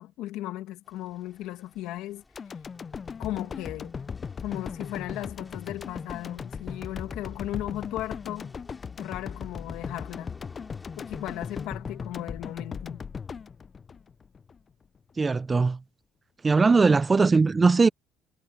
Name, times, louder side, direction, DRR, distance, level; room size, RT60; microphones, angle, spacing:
voice 1, 0.0-2.2 3.2-4.0 4.4-8.5 9.0-10.3 11.0-13.0, left 15 dB, 80° left, 2.0 m, -36 dB
sound 1, 0.8-11.7, left 3 dB, 15° left, 6.2 m, -57 dB
sound 2, 2.4-14.6 15.0-15.1, left 6 dB, 35° left, 0.4 m, -38 dB
voice 2, 15.2-15.8 16.4-17.9, right 4 dB, 25° right, 0.5 m, -20 dB
cardioid pair, 100°, 0 cm